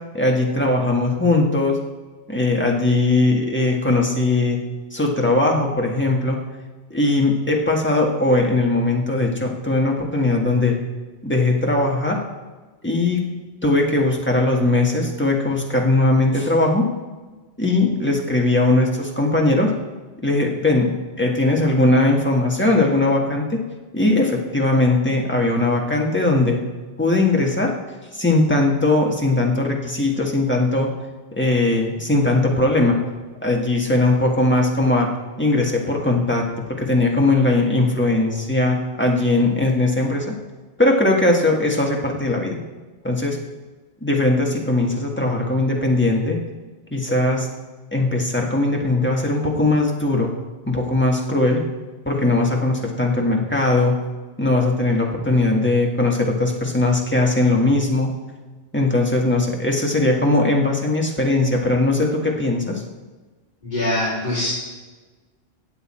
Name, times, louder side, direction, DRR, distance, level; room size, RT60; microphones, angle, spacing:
voice 1, 0.1-1.8 2.3-4.6 4.9-6.4 6.9-10.8 11.2-12.2 12.8-16.9 17.6-19.7 20.2-20.9 21.2-23.6 23.9-26.6 27.0-27.7 28.1-30.9 31.3-33.0 33.4-35.1 35.4-40.3 40.8-42.6 43.0-43.4 44.0-46.4 46.9-47.5 47.9-50.3 50.7-51.6 52.0-54.0 54.4-58.1 58.7-62.8, left 2 dB, 10° left, -1 dB, 1.5 m, -19 dB
voice 2, 63.6-64.5, left 1 dB, 45° left, -10 dB, 4.1 m, -23 dB
16.0 x 8.2 x 4.3 m, 1.3 s
omnidirectional pair, 1.0 m